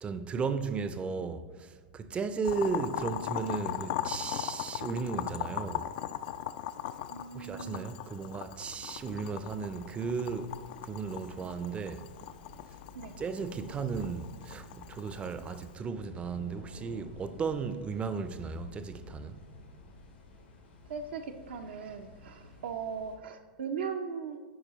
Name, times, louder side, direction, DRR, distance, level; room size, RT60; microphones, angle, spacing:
voice 1, 0.0-5.9 7.3-10.6 10.8-12.1 13.2-19.4, right 5 dB, 20° right, 0.4 m, -35 dB
Boiling, 2.4-15.7, left 12 dB, 60° left, 0.3 m, -39 dB
voice 2, 7.1-7.9 12.9-13.1 20.9-24.4, right 6 dB, 75° right, 0.5 m, -39 dB
sound 1, 8.5-23.2, left 2 dB, 85° left, 1.7 m, -53 dB
11.0 x 4.7 x 3.0 m
hypercardioid pair, 110°, 6 cm